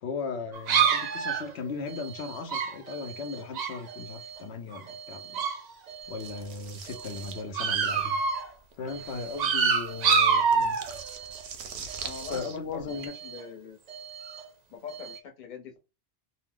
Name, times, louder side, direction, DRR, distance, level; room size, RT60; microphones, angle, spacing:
voice 1, 0.0-5.4 6.1-8.2 8.8-10.8 11.8-11.9 12.3-13.1, left 4 dB, 85° left, 0.9 m, -37 dB
sound 1, 0.5-4.4 4.7-5.6 5.9-6.4 6.9-8.5 8.9-11.4 11.9-12.4 12.9-13.4 13.9-14.5 14.9-15.2, right 6 dB, 55° right, 0.5 m, -29 dB
sound 2, 6.2-13.1, right 6 dB, 90° right, 0.9 m, -44 dB
voice 2, 12.0-13.8 14.7-15.8, left 6 dB, 50° left, 0.8 m, -42 dB
2.6 x 2.0 x 3.6 m
omnidirectional pair, 1.1 m